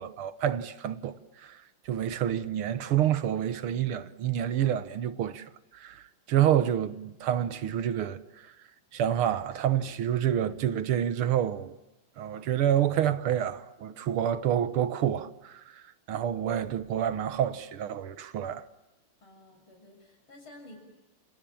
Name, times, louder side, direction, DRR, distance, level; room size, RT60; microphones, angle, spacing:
voice 1, 0.0-5.5 5.7-8.5 8.9-11.8 12.2-18.6, right 10 dB, 85° right, 2.0 m, -28 dB
voice 2, 19.2-20.8, left 1 dB, 85° left, 7.6 m, -51 dB
30.0 x 27.0 x 7.2 m
omnidirectional pair, 2.3 m